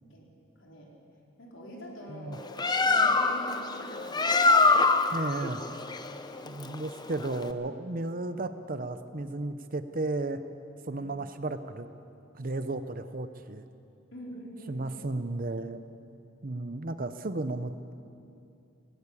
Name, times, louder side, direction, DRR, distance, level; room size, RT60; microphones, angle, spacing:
voice 1, 0.6-0.9 1.4-4.8 10.9-11.1 14.1-14.9, equal, 65° left, -3 dB, 4.5 m, -45 dB
Bird, 2.3-7.5, left 3 dB, 20° left, 0.7 m, -25 dB
voice 2, 5.1-5.6 6.4-10.4 10.8-11.9 12.3-13.6 14.7-15.8 16.4-17.9, right 2 dB, 40° right, 10 dB, 0.8 m, -34 dB
18.0 x 18.0 x 8.5 m, 2.6 s
head